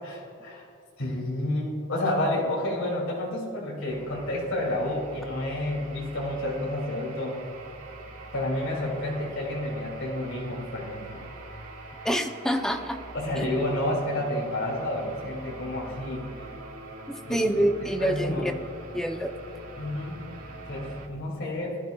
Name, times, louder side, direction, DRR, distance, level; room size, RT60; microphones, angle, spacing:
voice 1, 0.0-0.7 1.0-7.4 8.3-11.2 13.1-16.5 17.2-17.5 18.0-18.5 19.8-20.2 20.7-21.8, left 1 dB, 65° left, -4 dB, 2.6 m, -30 dB
sound 1, 3.9-21.1, right 2 dB, 80° right, 1.6 m, -44 dB
voice 2, 12.0-13.0 13.4-13.5 17.1-18.5 18.9-19.3, right 1 dB, ahead, 4 dB, 0.6 m, -26 dB
19.5 x 11.5 x 2.3 m, 2.4 s
head